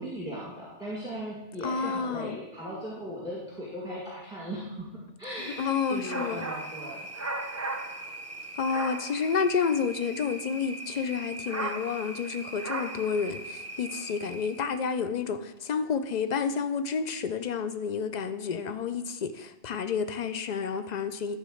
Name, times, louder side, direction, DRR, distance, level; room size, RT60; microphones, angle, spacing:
voice 1, 0.0-4.9 5.2-7.1, equal, 5° right, 1.9 m, -38 dB
voice 2, 1.6-2.4 5.6-6.5 8.6-21.4, left 6 dB, 65° left, 0.4 m, -30 dB
sound 1, 5.3-14.8, right 2 dB, 20° right, 0.4 m, -38 dB
11.5 x 3.9 x 6.4 m
omnidirectional pair, 1.2 m